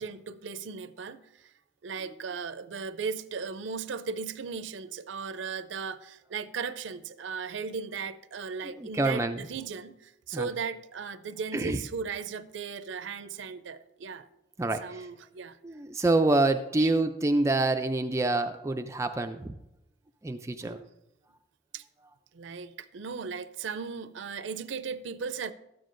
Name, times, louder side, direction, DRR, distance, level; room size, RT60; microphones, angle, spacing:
voice 1, 0.0-1.5 1.8-14.3 14.8-15.6 16.8-16.9 20.6-20.9 21.7-21.8 22.3-25.5, right 5 dB, 75° right, 0.5 m, -37 dB
voice 2, 8.6-9.5 10.3-10.5 11.5-11.8 14.6-15.1 15.6-19.5 20.2-20.8, right 2 dB, 15° right, 0.3 m, -27 dB
13.0 x 9.2 x 2.5 m
head